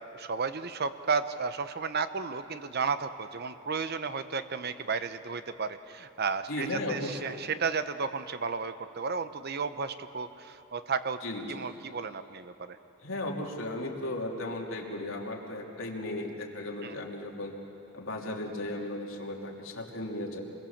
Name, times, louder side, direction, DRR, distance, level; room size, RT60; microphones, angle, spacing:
voice 1, 0.0-11.2 11.5-12.8 16.8-17.0, right 5 dB, 55° right, 11 dB, 0.9 m, -33 dB
voice 2, 6.5-7.4 11.2-11.7 13.0-17.5 17.9-20.4, left 1 dB, 90° left, 0 dB, 2.9 m, -36 dB
27.5 x 22.0 x 7.3 m, 3.0 s
head